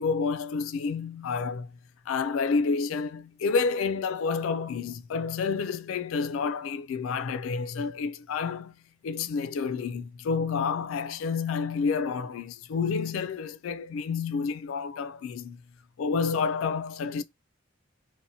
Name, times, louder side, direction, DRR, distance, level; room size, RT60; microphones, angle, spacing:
voice 1, 0.0-1.7 2.1-15.6 16.0-17.2, left 5 dB, 90° left, 0.3 m, -29 dB
2.7 x 2.1 x 2.7 m
head